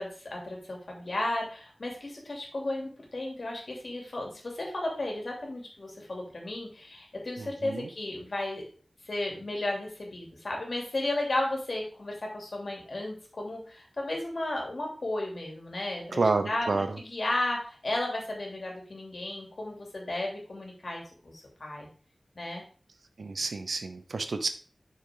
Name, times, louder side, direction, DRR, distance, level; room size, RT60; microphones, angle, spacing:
voice 1, 0.0-8.6 9.0-16.2 16.4-21.9 22.3-22.6, left 1 dB, 65° left, 0 dB, 3.0 m, -34 dB
voice 2, 7.4-7.9 16.1-17.0 23.2-24.5, right 3 dB, 85° right, 8 dB, 0.8 m, -29 dB
6.8 x 6.5 x 3.9 m, 0.40 s
wide cardioid pair, 75°, 0 cm